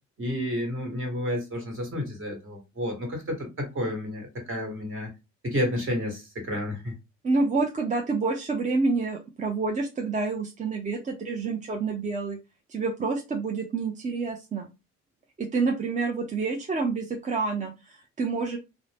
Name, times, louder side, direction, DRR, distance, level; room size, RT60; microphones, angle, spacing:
voice 1, 0.2-5.1 5.4-6.9, left 1 dB, 45° right, 1.4 m, -31 dB
voice 2, 7.2-12.4 12.7-14.7 15.4-18.6, right 4 dB, 25° right, 0.4 m, -28 dB
2.5 x 2.0 x 3.3 m
cardioid pair, 90°, 30 cm